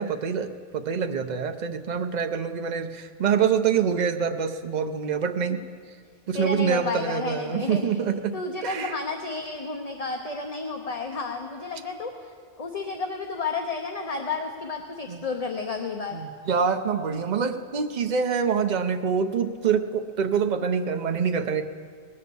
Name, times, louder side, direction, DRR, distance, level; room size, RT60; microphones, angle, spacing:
voice 1, 0.0-5.6 6.3-8.3 8.6-8.9 15.1-15.2 16.1-21.6, right 6 dB, 45° right, 7 dB, 0.8 m, -25 dB
voice 2, 6.3-7.8 8.3-16.2, left 4 dB, 40° left, 3 dB, 0.9 m, -31 dB
19.5 x 8.5 x 7.0 m, 2.1 s
omnidirectional pair, 1.1 m